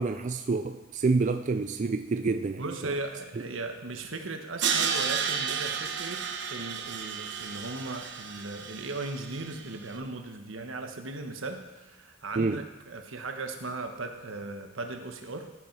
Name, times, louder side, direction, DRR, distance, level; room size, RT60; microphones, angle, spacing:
voice 1, 0.0-2.7 12.4-12.6, right 4 dB, 40° right, 8 dB, 0.4 m, -28 dB
voice 2, 2.6-15.5, right 3 dB, 85° right, 5 dB, 1.3 m, -37 dB
Crash cymbal, 4.6-9.7, right 7 dB, 60° right, 1.1 m, -32 dB
14.5 x 8.4 x 4.7 m, 1.2 s
head